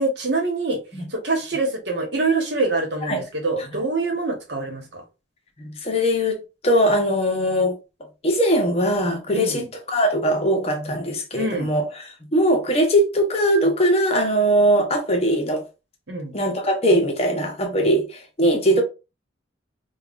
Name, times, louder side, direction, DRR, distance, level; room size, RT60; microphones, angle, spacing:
voice 1, 0.0-0.8 1.1-5.0 9.3-9.7 11.4-11.7 16.1-16.3, right 3 dB, 60° right, 1.1 m, -25 dB
voice 2, 5.6-7.8 8.2-9.6 9.9-15.6 16.3-18.8, equal, 30° left, 0.7 m, -20 dB
5.3 x 2.3 x 2.4 m
head